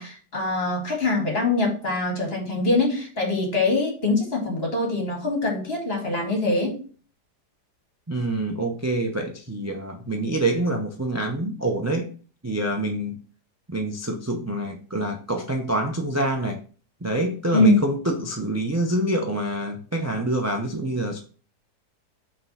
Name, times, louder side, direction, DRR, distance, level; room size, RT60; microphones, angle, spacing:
voice 1, 0.0-6.8 17.5-17.7, left 2 dB, 35° left, -1 dB, 2.4 m, -23 dB
voice 2, 8.1-12.1 12.4-13.2 13.7-16.6 17.0-21.2, right 1 dB, 25° right, 3 dB, 0.3 m, -26 dB
5.8 x 3.8 x 5.5 m, 0.39 s
omnidirectional pair, 1.8 m